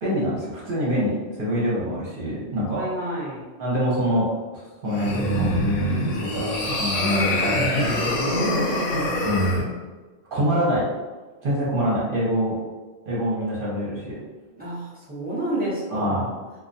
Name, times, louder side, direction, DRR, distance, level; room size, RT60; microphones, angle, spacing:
voice 1, 0.0-2.8 3.6-4.3 4.5-8.1 9.3-9.6 10.3-10.9 11.4-12.6 13.1-14.2 15.9-16.3, equal, 55° right, -6 dB, 0.8 m, -25 dB
voice 2, 2.7-3.4 7.0-7.6 8.2-9.4 14.5-16.3, right 1 dB, 10° right, -7 dB, 0.4 m, -30 dB
sound 1, 4.9-9.6, left 1 dB, 90° left, 0.9 m, -25 dB
2.2 x 2.1 x 2.6 m, 1.3 s
omnidirectional pair, 1.3 m